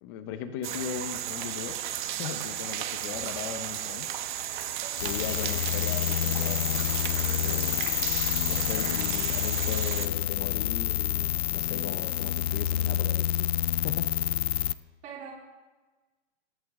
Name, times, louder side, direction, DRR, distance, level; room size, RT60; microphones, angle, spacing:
voice 1, 0.0-1.8 2.2-4.1 4.9-6.6 7.2-7.8 8.5-14.1, left 8 dB, 20° left, 10 dB, 0.7 m, -38 dB
sound 1, 0.6-10.1, right 11 dB, 45° right, 1.0 m, -34 dB
sound 2, 5.0-14.7, left 12 dB, 60° left, 0.6 m, -28 dB
voice 2, 15.0-15.3, right 7 dB, 20° right, -3 dB, 2.4 m, -43 dB
21.5 x 8.5 x 3.7 m, 1.3 s
hypercardioid pair, 160°, 35 cm